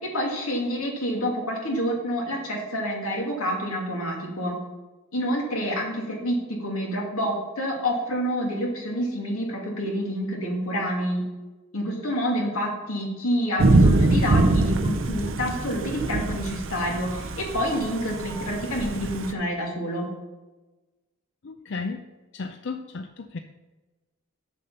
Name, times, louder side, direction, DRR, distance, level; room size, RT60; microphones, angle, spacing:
voice 1, 0.0-4.6 5.1-11.2 11.7-20.1, equal, 85° left, -1 dB, 2.6 m, -28 dB
Thunder / Rain, 13.6-19.3, right 2 dB, 65° right, 0.6 m, -23 dB
voice 2, 21.4-22.0 22.3-23.4, left 4 dB, 55° left, 6 dB, 0.5 m, -34 dB
7.6 x 6.9 x 5.7 m, 1.2 s
head